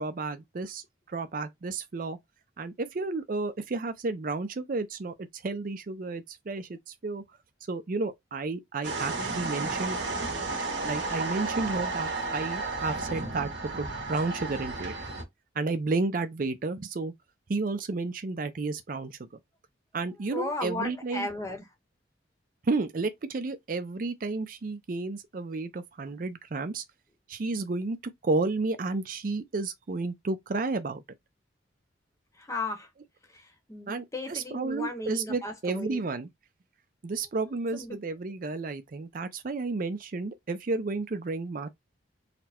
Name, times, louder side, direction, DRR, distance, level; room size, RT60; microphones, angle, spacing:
voice 1, 0.0-2.2 2.6-7.2 7.7-10.0 10.8-14.9 15.6-17.1 17.5-19.2 19.9-21.3 22.6-26.8 27.3-28.0 28.2-31.0 33.9-36.3 37.0-41.7, right 3 dB, 45° right, 0.4 m, -32 dB
sound 1, 8.8-15.2, right 3 dB, 70° right, 1.5 m, -32 dB
voice 2, 20.3-21.6 32.4-32.9 33.3-36.0 37.7-38.0, left 2 dB, 15° left, 0.9 m, -35 dB
4.1 x 2.1 x 4.2 m
head